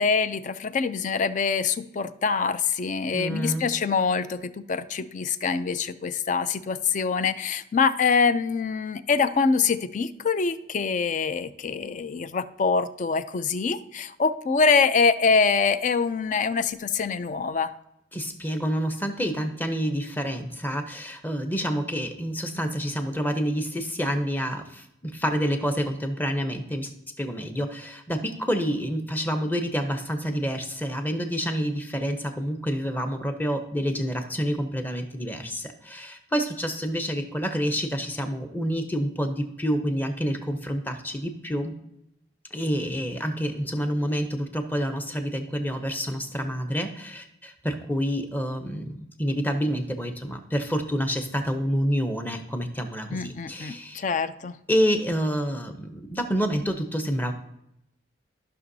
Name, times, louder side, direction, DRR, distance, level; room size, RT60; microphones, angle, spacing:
voice 1, 0.0-17.7 53.1-54.6, left 5 dB, 40° left, 13 dB, 0.4 m, -24 dB
voice 2, 3.1-3.7 18.1-26.9 27.2-41.7 42.5-54.0 54.7-57.3, equal, 10° left, 6 dB, 0.7 m, -28 dB
14.0 x 6.0 x 2.7 m, 0.83 s
head